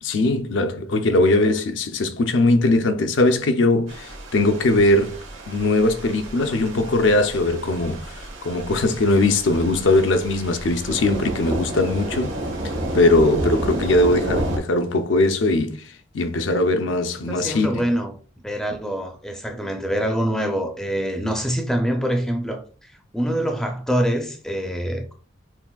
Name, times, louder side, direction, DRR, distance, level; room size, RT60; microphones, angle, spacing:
voice 1, 0.0-5.2 5.5-12.3 12.9-17.9, left 2 dB, 65° left, 0.5 m, -20 dB
sound 1, 3.9-14.6, right 1 dB, 70° right, 1.2 m, -31 dB
voice 2, 17.3-18.2 18.4-22.6 23.1-25.1, equal, 5° left, 0.4 m, -25 dB
5.8 x 2.4 x 2.3 m
head